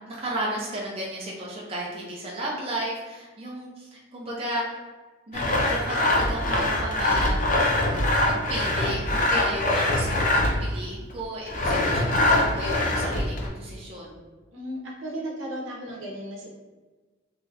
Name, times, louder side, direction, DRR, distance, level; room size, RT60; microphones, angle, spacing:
voice 1, 0.1-4.8 5.3-7.6 8.3-14.2, right 1 dB, 30° right, -5 dB, 0.4 m, -34 dB
Sawing, 5.3-10.7 11.5-13.5, left 1 dB, 40° left, 0.4 m, -23 dB
voice 2, 14.5-16.5, right 1 dB, 75° right, -3 dB, 0.7 m, -35 dB
2.7 x 2.3 x 3.2 m, 1.3 s
head